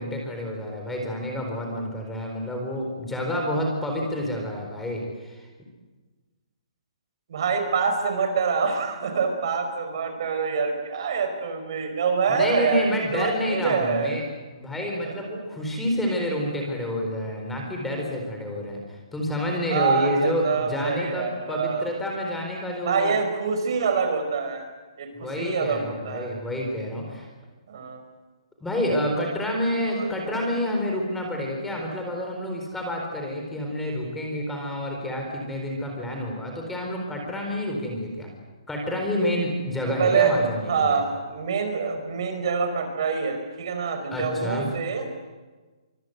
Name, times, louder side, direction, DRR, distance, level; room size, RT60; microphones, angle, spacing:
voice 1, 0.0-5.5 12.3-14.2 14.5-23.1 25.1-27.3 28.6-38.3 38.7-41.0 44.1-44.7, left 1 dB, 5° left, 0 dB, 4.2 m, -28 dB
voice 2, 7.3-14.2 15.0-15.1 19.7-21.9 22.8-24.6 25.0-26.3 27.7-28.0 29.9-30.1 40.0-45.1, right 5 dB, 50° right, 6 dB, 5.1 m, -26 dB
25.0 x 24.0 x 8.1 m, 1.3 s
hypercardioid pair, 165°, 3 cm